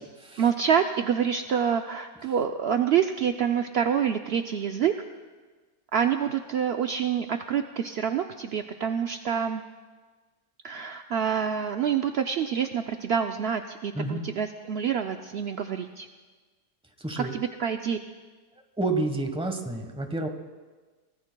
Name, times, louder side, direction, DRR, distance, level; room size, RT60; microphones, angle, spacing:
voice 1, 0.4-4.9 5.9-9.6 10.6-16.1 17.2-18.0, right 8 dB, 75° right, 6 dB, 0.5 m, -27 dB
voice 2, 13.9-14.3 17.0-17.3 18.8-20.3, right 2 dB, 5° right, 5 dB, 1.0 m, -29 dB
24.0 x 18.5 x 2.3 m, 1.3 s
omnidirectional pair, 1.7 m